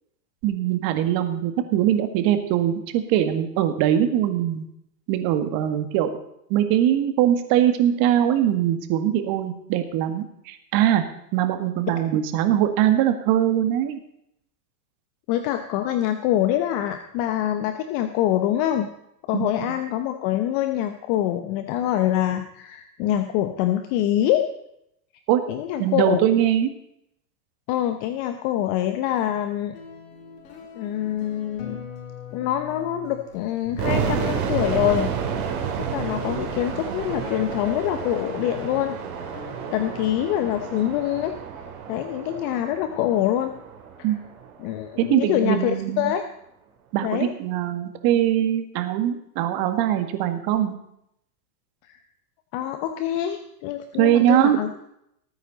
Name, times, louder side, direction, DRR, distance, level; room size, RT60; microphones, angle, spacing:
voice 1, 0.4-4.6 5.1-6.1 6.5-11.0 11.3-14.0 19.3-19.5 25.3-25.4 25.8-26.7 44.0-44.2 45.0-46.1 46.9-50.8 54.0-54.6, right 11 dB, 45° right, 8 dB, 1.8 m, -22 dB
voice 2, 15.3-18.9 19.3-24.5 25.5-26.2 27.7-29.7 30.7-31.9 32.3-35.1 35.8-38.9 39.7-41.3 41.9-43.5 44.0-44.1 44.6-46.2 47.0-47.3 51.8-52.0 52.5-54.7, left 12 dB, 45° left, 8 dB, 1.1 m, -25 dB
sound 1, 29.7-40.9, left 5 dB, 70° left, 3.5 m, -41 dB
sound 2, 33.8-44.7, right 7 dB, 60° right, 3.3 m, -30 dB
19.0 x 9.2 x 4.1 m, 0.78 s
hypercardioid pair, 115°, 49 cm